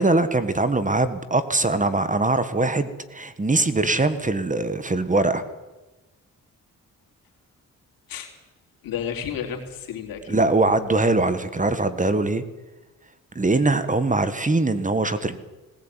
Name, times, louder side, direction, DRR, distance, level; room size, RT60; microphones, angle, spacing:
voice 1, 0.0-5.4 10.3-12.4 13.4-15.4, right 2 dB, 20° right, 12 dB, 1.8 m, -22 dB
voice 2, 8.8-10.4 13.4-13.7, left 8 dB, 85° left, 4 dB, 3.5 m, -32 dB
18.5 x 17.0 x 9.2 m, 1.1 s
cardioid pair, 70°, 34 cm